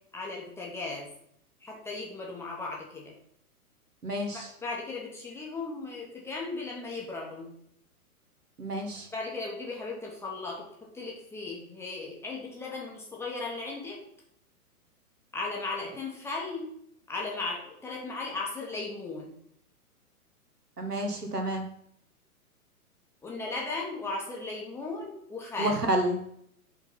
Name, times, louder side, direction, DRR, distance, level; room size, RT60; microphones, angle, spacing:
voice 1, 0.1-1.1 1.6-3.1 4.3-7.6 9.1-14.0 15.3-16.7 17.1-19.4 23.2-25.8, left 3 dB, 5° left, -3 dB, 0.8 m, -36 dB
voice 2, 4.0-4.5 8.6-9.1 20.8-21.7 25.6-26.2, right 1 dB, 85° right, 4 dB, 1.4 m, -29 dB
5.0 x 3.9 x 5.2 m, 0.70 s
figure-of-eight pair, 115°, 45 cm